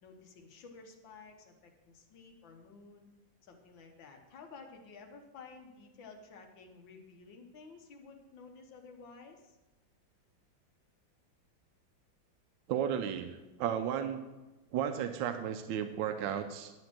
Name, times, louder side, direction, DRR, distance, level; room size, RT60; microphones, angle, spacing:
voice 1, 0.0-3.0 3.4-9.6, left 4 dB, 80° left, 3 dB, 1.8 m, -53 dB
voice 2, 12.7-14.2 14.7-16.7, right 9 dB, 80° right, 7 dB, 1.3 m, -34 dB
11.0 x 4.3 x 7.5 m, 1.1 s
omnidirectional pair, 2.1 m